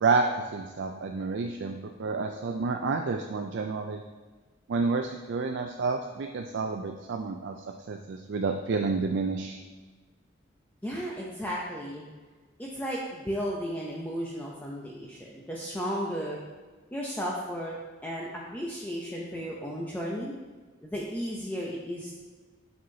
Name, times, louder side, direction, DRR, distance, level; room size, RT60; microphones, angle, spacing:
voice 1, 0.0-4.0 4.7-7.6 7.9-9.6, right 4 dB, 65° right, 4 dB, 0.4 m, -29 dB
voice 2, 10.8-12.1 12.6-16.4 16.9-17.8 18.0-20.3 20.8-22.2, equal, 10° left, -4 dB, 0.6 m, -34 dB
7.8 x 5.5 x 2.8 m, 1.4 s
head